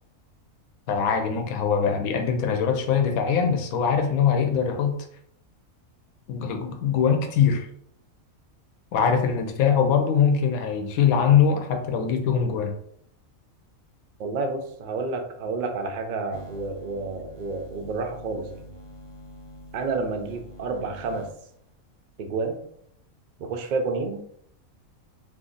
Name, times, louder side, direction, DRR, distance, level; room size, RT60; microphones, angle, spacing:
voice 1, 0.9-5.0 6.3-7.7 8.9-12.8, left 7 dB, 90° left, 5 dB, 1.1 m, -22 dB
voice 2, 14.2-18.7 19.7-21.3 22.2-22.6 23.4-24.2, right 3 dB, 85° right, 4 dB, 0.4 m, -30 dB
sound 1, 16.3-21.7, left 1 dB, 35° left, 0.5 m, -46 dB
2.6 x 2.6 x 3.8 m, 0.68 s
omnidirectional pair, 1.4 m